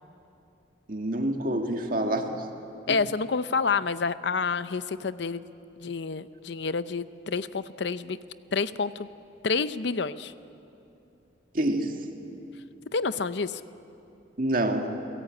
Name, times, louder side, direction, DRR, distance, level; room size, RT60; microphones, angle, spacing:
voice 1, 0.9-2.5 11.5-12.1 14.4-14.9, right 1 dB, 45° right, 3 dB, 2.0 m, -27 dB
voice 2, 2.9-5.4 5.8-8.2 8.5-9.1 9.4-10.3 12.9-13.6, left 4 dB, 65° left, 14 dB, 0.6 m, -28 dB
29.0 x 17.5 x 8.8 m, 2.8 s
head